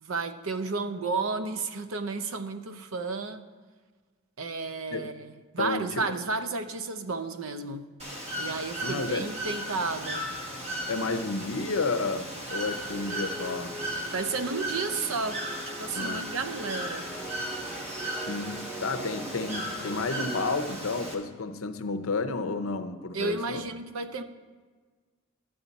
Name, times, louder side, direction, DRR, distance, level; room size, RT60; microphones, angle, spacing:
voice 1, 0.0-3.4 4.4-7.9 8.3-10.3 14.1-17.1 23.1-24.2, right 4 dB, 80° right, 10 dB, 0.6 m, -32 dB
voice 2, 5.6-6.0 8.8-9.3 10.9-13.8 16.0-16.3 18.1-23.6, left 3 dB, 80° left, 8 dB, 0.7 m, -31 dB
Bird / Water, 8.0-21.1, right 1 dB, 30° right, 1.2 m, -36 dB
sound 1, 12.9-20.5, right 1 dB, 10° right, 0.6 m, -43 dB
11.5 x 7.9 x 4.1 m, 1.5 s
head